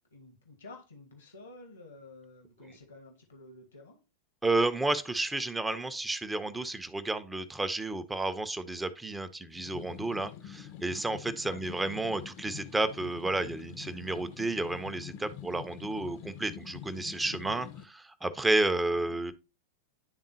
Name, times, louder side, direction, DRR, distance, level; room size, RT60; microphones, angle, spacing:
voice 1, 0.0-4.0 11.5-11.6 19.0-19.2, left 2 dB, 80° left, 1.0 m, -51 dB
voice 2, 4.4-19.3, right 2 dB, 10° right, 0.5 m, -31 dB
sound 1, 9.5-17.8, left 10 dB, 45° left, 0.5 m, -46 dB
10.5 x 3.5 x 2.7 m
figure-of-eight pair, 90°, 0 cm